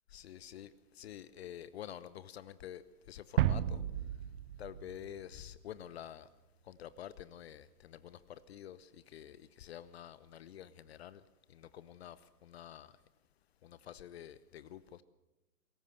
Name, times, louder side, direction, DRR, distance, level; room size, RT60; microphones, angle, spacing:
voice 1, 0.1-3.8 4.6-6.3 6.6-11.2 11.5-12.9 13.6-15.0, left 10 dB, 45° left, 0.9 m, -49 dB
sound 1, 3.4-5.9, right 11 dB, 35° right, 0.8 m, -34 dB
23.0 x 15.0 x 7.9 m
figure-of-eight pair, 125°, 46 cm